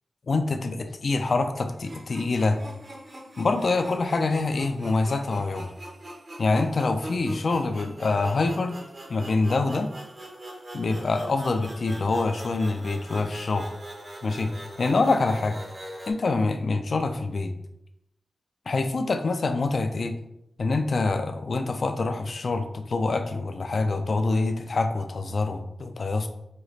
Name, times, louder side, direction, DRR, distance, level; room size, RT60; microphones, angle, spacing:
voice 1, 0.3-2.6 3.4-5.7 6.4-8.8 9.1-9.9 10.7-13.7 14.2-14.5 14.8-15.6 16.1-17.5 18.7-20.1 20.6-26.3, left 3 dB, 60° left, 7 dB, 0.4 m, -25 dB
sound 1, 1.8-16.1, right 1 dB, 50° right, 0.9 m, -42 dB
5.1 x 2.4 x 3.1 m, 0.83 s
wide cardioid pair, 75°, 0 cm